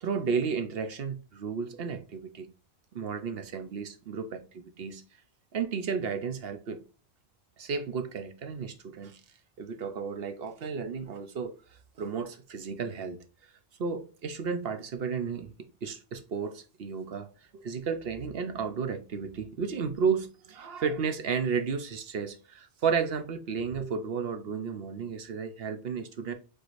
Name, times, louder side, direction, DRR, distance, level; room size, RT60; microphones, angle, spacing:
voice 1, 0.0-2.5 2.9-5.0 5.5-6.8 7.6-9.2 9.6-13.2 13.8-17.3 17.5-26.3, right 6 dB, 65° right, 1.0 m, -33 dB
4.7 x 4.4 x 2.6 m
omnidirectional pair, 1.1 m